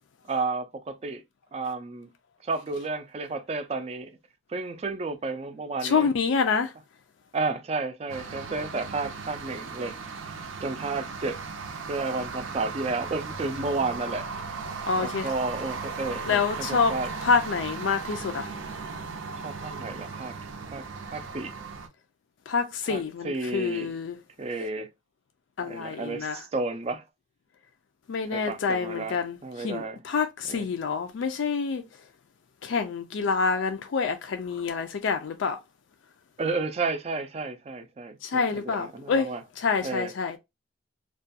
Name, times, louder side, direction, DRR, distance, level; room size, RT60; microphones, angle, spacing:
voice 1, 0.2-1.2 1.5-2.1 2.4-4.1 4.5-6.1 7.3-10.0 10.2-11.4 11.9-14.6 15.0-17.1 19.4-20.4 20.7-20.9 21.1-21.6 22.9-23.9 24.4-24.9 25.6-27.1 28.3-30.0 30.5-30.6 36.4-39.4 39.8-40.1, right 3 dB, 30° right, 0.3 m, -32 dB
voice 2, 5.8-6.7 14.6-15.3 16.3-16.9 17.2-18.5 22.5-24.2 25.6-26.4 28.1-32.1 32.6-35.6 38.2-39.3 39.6-40.4, left 5 dB, 70° left, 0.4 m, -27 dB
sound 1, 8.1-21.9, right 4 dB, 85° right, 0.5 m, -37 dB
2.4 x 2.2 x 2.6 m
head